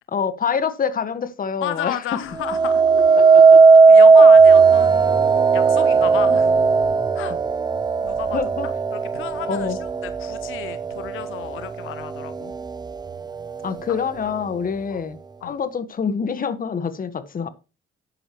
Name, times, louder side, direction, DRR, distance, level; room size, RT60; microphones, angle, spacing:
voice 1, 0.1-2.0 3.2-3.6 4.2-4.3 8.3-8.7 9.5-9.8 13.6-17.5, left 6 dB, 45° left, 1.6 m, -26 dB
voice 2, 1.6-2.8 3.9-5.2 5.5-6.5 7.1-7.3 8.0-8.4 8.6-12.5 14.9-15.0 15.4-15.6, left 13 dB, 85° left, 0.7 m, -32 dB
sound 1, 2.4-11.6 12.1-12.6, right 4 dB, 20° right, 0.6 m, -15 dB
11.5 x 9.9 x 3.1 m
cardioid pair, 90°, 20 cm